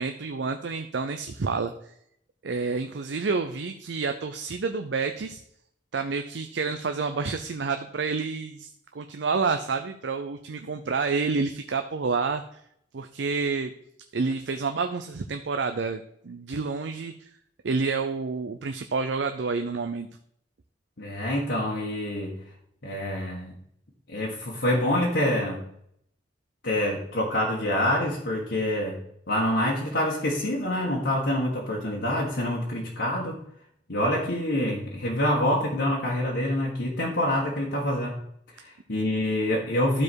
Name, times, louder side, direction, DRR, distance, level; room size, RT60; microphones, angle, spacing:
voice 1, 0.0-1.7 2.4-5.4 5.9-8.7 8.9-12.4 12.9-13.7 14.1-17.3 17.6-20.1, right 4 dB, 85° right, 7 dB, 0.6 m, -29 dB
voice 2, 21.0-22.3 22.8-23.6 24.1-25.6 26.6-29.0 29.3-33.4 33.9-38.2 38.5-40.0, left 1 dB, 75° left, -4 dB, 1.7 m, -26 dB
12.0 x 4.8 x 4.6 m, 0.71 s
head